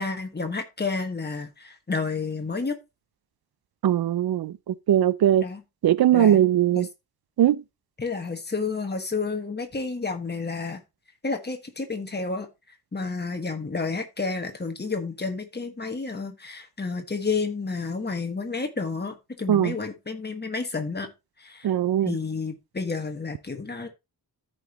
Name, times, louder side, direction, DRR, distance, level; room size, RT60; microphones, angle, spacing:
voice 1, 0.0-2.8 5.4-5.6 6.1-6.4 6.7-6.9 8.0-10.8 11.2-12.5 12.9-21.1 21.4-21.7 22.0-23.9, left 4 dB, 25° left, 1.4 m, -30 dB
voice 2, 3.8-5.5 5.8-6.9 7.4-7.6 19.5-19.7 21.6-22.2, right 11 dB, 80° right, 0.5 m, -20 dB
14.0 x 5.3 x 2.9 m
wide cardioid pair, 160°, 37 cm